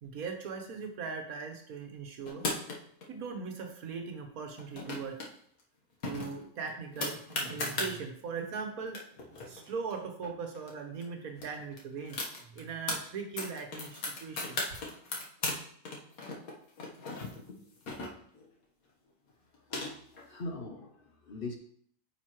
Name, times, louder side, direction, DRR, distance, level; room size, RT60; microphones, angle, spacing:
voice 1, 0.0-2.4 3.1-5.2 6.0-9.0 9.5-12.3 12.5-14.6, right 5 dB, 80° right, 4 dB, 1.5 m, -39 dB
sound 1, 2.3-3.0 4.5-5.3 5.6-5.7 6.0-7.9 8.6-8.7 8.9-10.7 11.0-11.1 11.4-13.0 13.4-15.6 15.9-18.5 19.3-20.2, left 2 dB, 80° left, 1.7 m, -37 dB
voice 2, 20.1-21.6, left 2 dB, 50° left, 4 dB, 0.8 m, -40 dB
9.4 x 5.4 x 3.0 m, 0.63 s
omnidirectional pair, 1.5 m